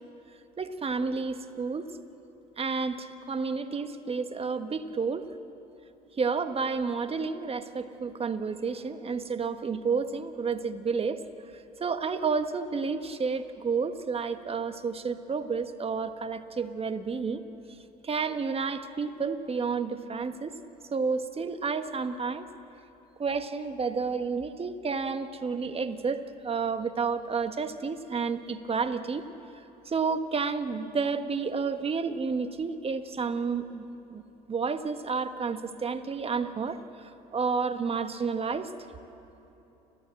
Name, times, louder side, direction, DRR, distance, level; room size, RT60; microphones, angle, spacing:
voice 1, 0.6-1.9 2.6-5.3 6.2-11.2 11.8-17.4 18.0-20.6 20.9-22.5 23.2-29.3 29.9-34.2 34.5-38.7, right 5 dB, 30° right, 10 dB, 1.4 m, -30 dB
30.0 x 14.5 x 7.7 m, 3.0 s
hypercardioid pair, 70°, 21 cm